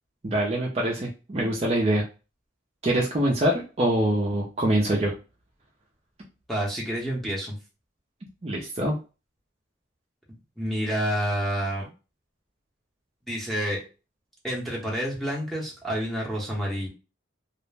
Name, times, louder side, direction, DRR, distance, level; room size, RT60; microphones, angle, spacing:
voice 1, 0.2-2.0 2.8-5.1 8.4-8.9, right 1 dB, 30° right, -1 dB, 0.4 m, -24 dB
voice 2, 6.5-7.6 10.6-11.9 13.3-13.8 14.4-16.9, equal, ahead, -4 dB, 0.7 m, -28 dB
2.3 x 2.0 x 3.2 m, 0.32 s
head